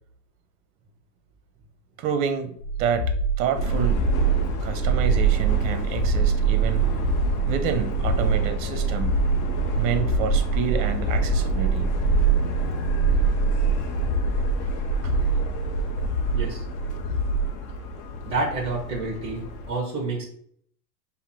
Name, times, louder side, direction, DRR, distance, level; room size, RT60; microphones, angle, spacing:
voice 1, 2.0-2.5 2.8-4.0 4.6-6.8 7.5-9.2 9.8-11.9 15.0-15.1, right 8 dB, 50° right, 9 dB, 0.8 m, -28 dB
sound 1, 2.6-17.5, right 1 dB, 80° left, 1.1 m, -27 dB
Subway metro underground, 3.5-19.7, right 5 dB, 30° left, 0.6 m, -25 dB
voice 2, 16.3-16.6 18.2-20.2, right 3 dB, 10° right, -1 dB, 1.3 m, -29 dB
5.6 x 2.1 x 4.2 m, 0.64 s
hypercardioid pair, 120°, 50 cm